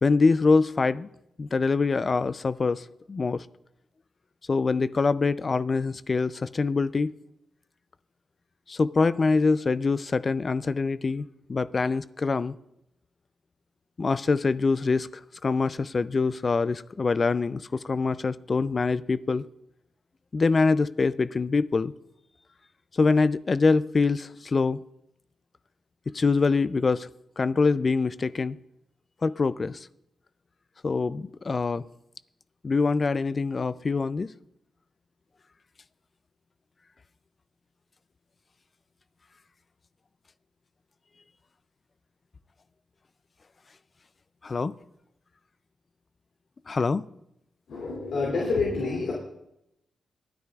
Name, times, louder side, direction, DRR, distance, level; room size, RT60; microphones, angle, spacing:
voice 1, 0.0-1.1 1.4-3.5 4.5-7.1 8.7-12.5 14.0-15.1 15.4-19.4 20.3-21.9 22.9-24.8 26.1-27.1 27.4-28.6 29.2-29.9 30.8-31.8 32.6-34.3 44.4-44.7 46.7-47.0, left 4 dB, 45° left, 16 dB, 0.4 m, -24 dB
voice 2, 47.7-49.1, left 3 dB, 75° left, -3 dB, 2.7 m, -27 dB
22.0 x 9.5 x 2.4 m, 0.82 s
cardioid pair, 60°, 0 cm